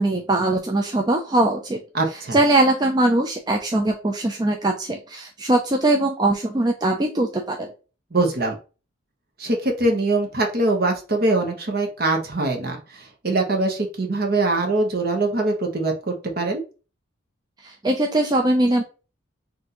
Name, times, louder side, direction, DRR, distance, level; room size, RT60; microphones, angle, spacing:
voice 1, 0.0-1.8 2.1-7.7 17.6-18.8, right 2 dB, 20° right, 3 dB, 0.4 m, -21 dB
voice 2, 1.9-2.4 8.1-8.6 9.4-16.6, right 2 dB, 50° right, 3 dB, 1.0 m, -23 dB
4.2 x 2.6 x 3.7 m, 0.35 s
head